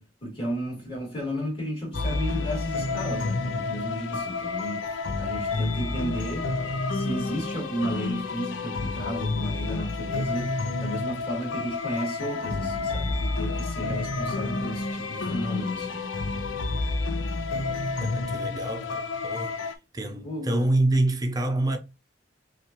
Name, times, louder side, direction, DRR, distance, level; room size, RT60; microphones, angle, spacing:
voice 1, 0.0-4.9 5.2-6.5 6.9-10.5 10.8-16.0 20.2-20.7, equal, 30° left, 2.3 m, -33 dB
sound 1, 1.9-19.7, left 3 dB, 85° left, 0.6 m, -29 dB
voice 2, 18.0-19.6 19.9-21.8, right 2 dB, 20° right, 0.6 m, -26 dB
5.6 x 2.5 x 3.0 m
head